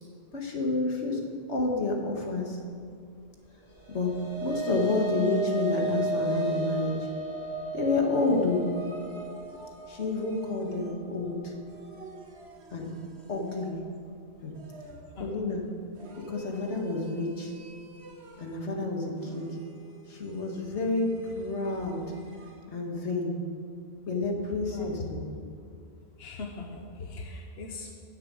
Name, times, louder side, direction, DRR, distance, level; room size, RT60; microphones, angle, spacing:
voice 1, 0.3-1.2 1.5-2.6 3.9-6.9 7.7-8.7 9.9-11.5 12.7-12.9 13.3-13.8 14.4-14.5 15.2-15.7 16.3-17.5 18.4-19.6 20.1-22.0 22.7-23.3 24.1-25.3, left 3 dB, 90° left, 1 dB, 2.0 m, -29 dB
sound 1, 3.7-12.2, right 2 dB, 35° left, 4.2 m, -34 dB
sound 2, 5.2-6.9 8.1-11.2 11.7-14.0 14.5-15.3 15.9-18.7 19.1-22.7, right 3 dB, 70° right, 1.4 m, -48 dB
voice 2, 26.2-27.9, left 3 dB, 65° left, 1 dB, 1.2 m, -40 dB
10.0 x 8.1 x 8.6 m, 2.4 s
omnidirectional pair, 1.1 m